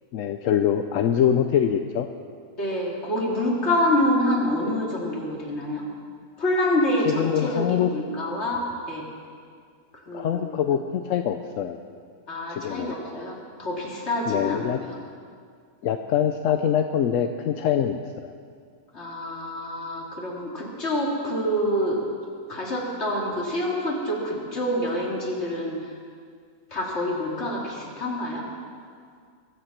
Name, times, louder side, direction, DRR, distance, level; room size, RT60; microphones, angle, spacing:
voice 1, 0.1-2.1 7.1-7.9 10.1-11.8 12.5-12.9 14.3-14.8 15.8-18.3, left 9 dB, 65° left, 7 dB, 0.9 m, -24 dB
voice 2, 2.6-5.8 6.4-9.1 9.9-10.5 12.3-15.0 18.9-22.0 22.5-25.9 26.7-28.5, left 1 dB, 45° left, -3 dB, 3.0 m, -27 dB
23.0 x 7.9 x 7.3 m, 2.1 s
omnidirectional pair, 1.6 m